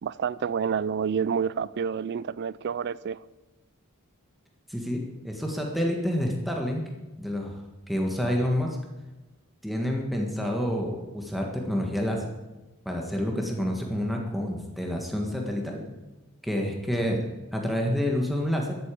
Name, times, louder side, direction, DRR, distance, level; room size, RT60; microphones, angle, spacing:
voice 1, 0.0-3.2, right 7 dB, 50° right, 0.3 m, -28 dB
voice 2, 4.7-6.8 7.2-7.6 7.9-8.8 9.6-12.3 12.8-15.8 16.4-17.2 17.5-18.8, equal, ahead, 1.6 m, -28 dB
13.0 x 8.4 x 8.6 m
head